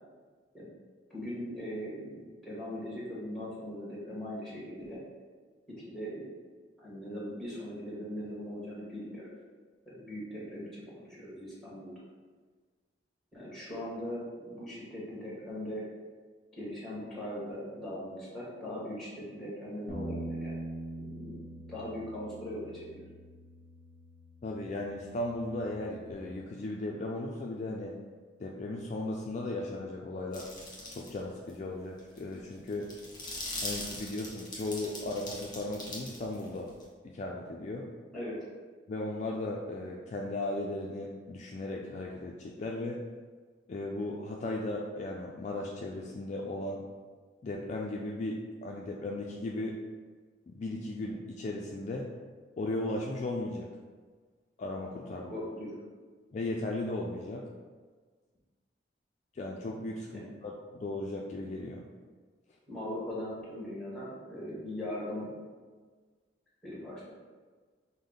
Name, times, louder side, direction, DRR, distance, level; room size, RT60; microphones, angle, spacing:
voice 1, 1.1-5.0 5.8-6.3 6.8-9.3 9.8-12.0 13.3-15.8 16.5-20.5 20.9-21.3 21.7-23.0 38.1-38.4 55.3-55.8 60.1-60.3 62.7-65.3 66.6-67.1, equal, ahead, -6 dB, 1.2 m, -40 dB
Bass guitar, 19.9-26.1, right 1 dB, 55° right, 0.8 m, -43 dB
voice 2, 24.4-27.9 28.4-30.5 30.9-32.9 33.6-36.7 37.0-37.9 38.9-43.0 43.7-46.9 47.4-49.8 50.5-52.1 52.6-53.7 54.6-55.3 56.3-57.5 59.3-61.8, left 2 dB, 40° left, -1 dB, 0.3 m, -36 dB
sound 1, 30.3-31.2 31.5-31.6 32.0-36.8, left 2 dB, 25° left, 1.1 m, -41 dB
5.2 x 2.1 x 3.8 m, 1.5 s
head